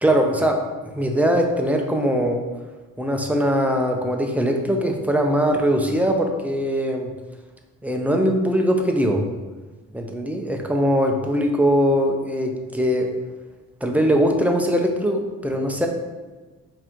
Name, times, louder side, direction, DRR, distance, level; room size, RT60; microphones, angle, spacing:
voice 1, 0.0-2.4 3.0-7.1 7.8-9.2 9.9-13.1 13.8-15.9, equal, 5° right, 2 dB, 0.6 m, -21 dB
4.7 x 2.8 x 3.7 m, 1.3 s
cardioid pair, 90°, 30 cm